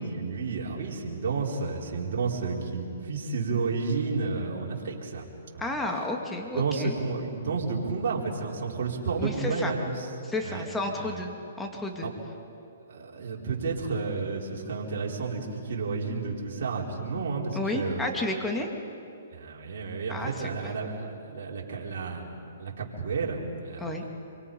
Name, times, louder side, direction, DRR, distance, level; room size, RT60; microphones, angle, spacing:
voice 1, 0.0-5.3 5.5-5.7 6.5-9.9 10.4-10.7 11.0-11.2 12.0-12.1 12.9-18.2 19.3-24.1, right 4 dB, 60° right, -2 dB, 4.4 m, -31 dB
voice 2, 5.6-7.0 9.2-9.7 10.3-11.3 11.6-12.1 17.5-18.7 20.1-20.7 23.8-24.0, left 2 dB, 10° left, 2 dB, 2.4 m, -32 dB
26.5 x 24.0 x 5.5 m, 2.7 s
hypercardioid pair, 135°, 0 cm